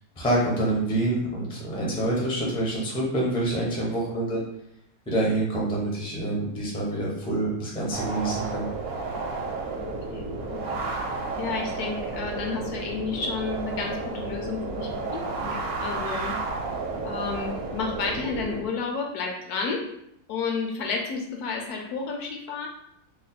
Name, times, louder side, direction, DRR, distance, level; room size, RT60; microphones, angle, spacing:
voice 1, 0.2-4.4 5.1-8.6, right 1 dB, 10° left, -4 dB, 0.4 m, -26 dB
sound 1, 7.9-18.6, right 3 dB, 70° right, 1.1 m, -32 dB
voice 2, 9.8-10.8 11.4-16.3 17.0-19.8 20.3-22.7, left 5 dB, 75° left, 1 dB, 1.1 m, -31 dB
3.1 x 2.1 x 4.1 m, 0.74 s
omnidirectional pair, 1.8 m